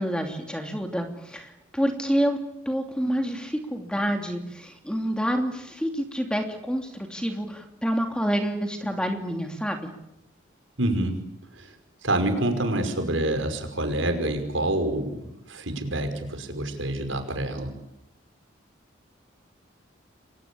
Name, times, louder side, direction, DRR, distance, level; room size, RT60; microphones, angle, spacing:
voice 1, 0.0-9.9, equal, 5° left, 4 dB, 2.9 m, -28 dB
voice 2, 10.8-11.2 11.5-11.7 12.0-15.2 15.5-17.7, right 1 dB, 80° right, 7 dB, 5.5 m, -27 dB
29.0 x 23.0 x 8.7 m, 0.86 s
head